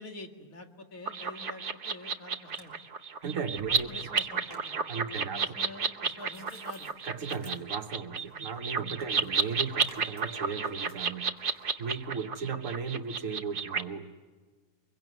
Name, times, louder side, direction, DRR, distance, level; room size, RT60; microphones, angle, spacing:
voice 1, 0.0-2.7 3.9-4.8 5.2-6.9 8.3-8.5 9.1-9.2, left 2 dB, 65° left, 2.6 m, -46 dB
sound 1, 1.0-13.8, right 5 dB, 40° right, 1.0 m, -32 dB
sound 2, 2.5-3.1 3.4-4.8 7.3-7.6 9.8-10.1, equal, 15° left, 3.3 m, -54 dB
voice 2, 3.2-3.9 4.9-5.4 7.0-11.4 11.8-14.1, right 5 dB, 60° right, 1.5 m, -36 dB
sound 3, 5.9-11.9, right 1 dB, 10° right, 5.7 m, -60 dB
24.5 x 22.5 x 9.4 m
omnidirectional pair, 1.6 m